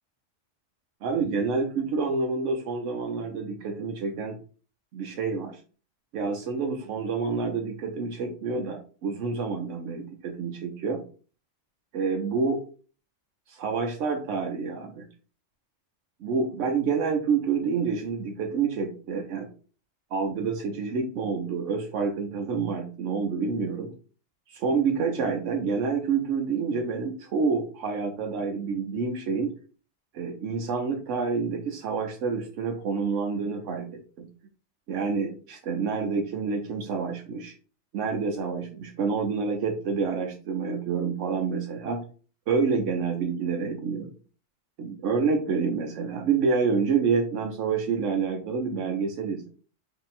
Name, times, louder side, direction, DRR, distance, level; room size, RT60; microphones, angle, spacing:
voice 1, 1.0-4.4 4.9-5.6 6.1-11.0 11.9-12.6 13.5-15.1 16.2-19.5 20.1-23.9 24.5-29.5 30.1-34.3 34.9-37.5 37.9-42.0 42.5-44.1 44.8-49.5, right 5 dB, 85° right, 3 dB, 0.9 m, -28 dB
2.7 x 2.7 x 4.1 m, 0.38 s
omnidirectional pair, 1.2 m